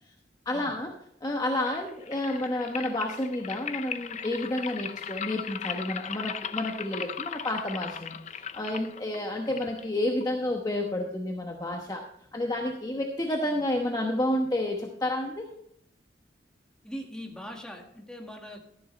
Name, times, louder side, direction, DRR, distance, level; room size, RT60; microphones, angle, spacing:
voice 1, 0.5-0.9 1.2-8.2 8.5-12.0 12.3-15.5, left 1 dB, 20° left, 1 dB, 1.0 m, -30 dB
sound 1, 1.5-10.5, left 8 dB, 40° left, 0.5 m, -38 dB
voice 2, 16.8-18.6, equal, 5° left, 1 dB, 1.7 m, -41 dB
12.5 x 11.0 x 3.2 m, 0.73 s
head